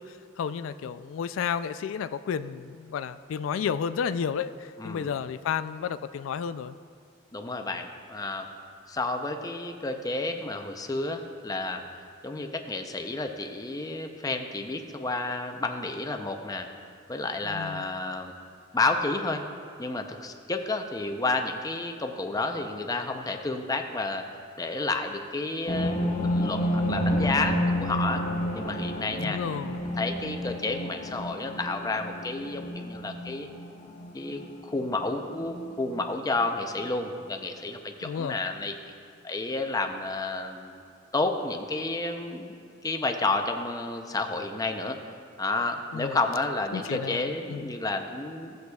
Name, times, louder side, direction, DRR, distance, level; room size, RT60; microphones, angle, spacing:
voice 1, 0.0-6.8 17.4-17.9 29.2-29.8 38.0-38.4 45.9-46.2 46.7-47.6, left 7 dB, 90° left, 13 dB, 0.3 m, -32 dB
voice 2, 4.8-5.1 7.3-8.5 8.9-11.8 12.2-16.7 17.1-18.3 18.7-19.4 19.8-24.2 24.6-28.2 28.5-29.4 29.8-33.5 34.1-38.7 39.2-40.8 41.1-42.5 42.8-45.0 45.4-48.6, left 3 dB, 20° left, 5 dB, 0.5 m, -31 dB
sound 1, 25.7-36.1 36.4-36.5 36.8-36.9, equal, 40° left, 1.1 m, -30 dB
15.5 x 7.9 x 2.3 m, 2.4 s
head